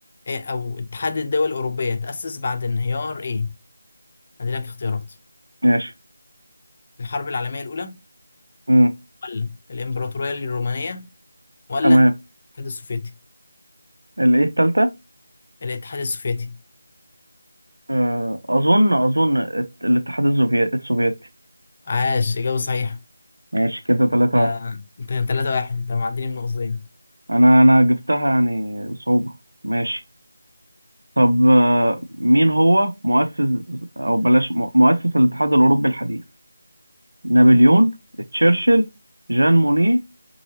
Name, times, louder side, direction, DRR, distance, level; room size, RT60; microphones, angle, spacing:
voice 1, 0.3-3.6 4.4-5.1 7.0-8.0 9.2-11.1 11.7-12.1 12.6-13.1 15.6-16.6 21.9-23.0 24.3-26.9, left 4 dB, 35° left, 0.6 m, -26 dB
voice 2, 14.2-14.9 17.9-21.1 23.5-24.5 27.3-29.3 29.6-30.0 31.2-36.2 37.2-38.0 38.3-38.9 39.3-40.0, right 1 dB, 70° right, 0.7 m, -17 dB
3.9 x 3.8 x 3.0 m
figure-of-eight pair, 165°, 0 cm